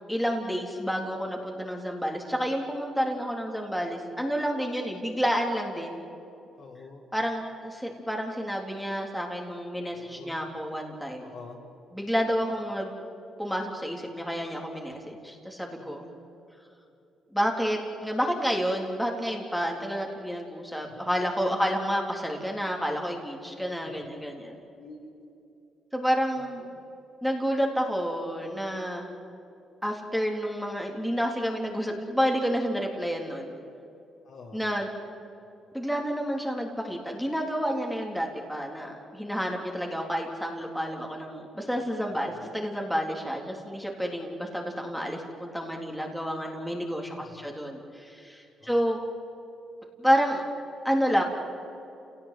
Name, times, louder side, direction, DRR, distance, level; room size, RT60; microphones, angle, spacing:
voice 1, 0.1-6.0 7.1-11.3 11.9-12.9 13.4-16.0 17.3-24.5 25.9-26.6 27.2-29.1 29.8-33.5 34.5-34.9 35.7-49.0 50.0-50.4 50.8-51.2, equal, ahead, 0 dB, 3.9 m, -29 dB
voice 2, 6.6-7.1 9.9-10.5 11.1-11.7 15.8-16.3 20.9-21.0 23.8-25.3 26.4-26.8 34.2-34.9 42.1-42.5 47.1-47.5 48.6-48.9, left 3 dB, 60° left, -1 dB, 5.2 m, -49 dB
29.0 x 18.0 x 9.4 m, 2.8 s
cardioid pair, 90°, 0 cm